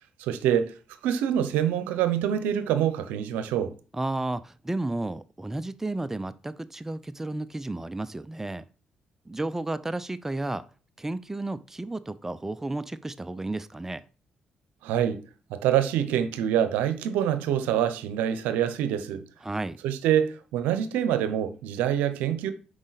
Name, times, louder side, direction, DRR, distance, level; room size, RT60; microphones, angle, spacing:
voice 1, 0.2-0.7 1.0-3.7 14.8-15.2 15.5-19.2 19.8-22.5, right 10 dB, 85° right, 0.7 m, -25 dB
voice 2, 3.9-8.6 9.3-10.6 11.0-14.0 19.4-19.8, right 2 dB, 15° right, 0.4 m, -32 dB
6.2 x 4.9 x 4.1 m
supercardioid pair, 60°, 3 cm